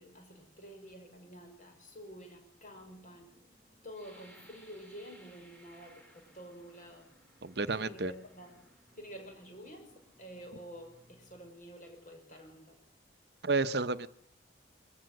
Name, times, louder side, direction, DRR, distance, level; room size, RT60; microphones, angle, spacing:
voice 1, 0.0-3.3 3.8-7.1 7.7-8.6 8.9-12.8, equal, 40° left, 4 dB, 5.8 m, -49 dB
sound 1, 2.7-11.5, equal, 15° right, 6.6 m, -68 dB
sound 2, 3.9-9.6 10.2-10.4 10.8-11.3, right 1 dB, 5° left, 3.3 m, -62 dB
voice 2, 7.4-8.1 13.4-14.1, right 3 dB, 55° right, 13 dB, 0.7 m, -31 dB
22.0 x 15.5 x 7.6 m, 0.64 s
head